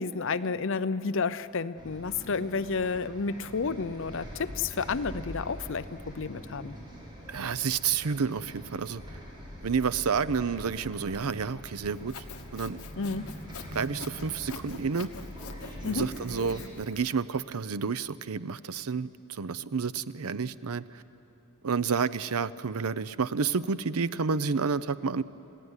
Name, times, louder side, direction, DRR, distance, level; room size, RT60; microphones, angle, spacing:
voice 1, 0.0-6.7 13.0-13.3 15.8-16.1, left 4 dB, 60° left, 14 dB, 0.6 m, -31 dB
Bus, 1.8-16.7, equal, 20° right, 5.2 m, -44 dB
voice 2, 7.3-9.0 9.6-12.2 12.5-12.8 13.7-15.1 15.8-21.0 21.6-25.2, right 5 dB, 80° right, 15 dB, 0.6 m, -30 dB
Sawing, 11.9-17.0, left 5 dB, 80° left, 1.3 m, -45 dB
28.5 x 16.0 x 9.8 m, 2.9 s
head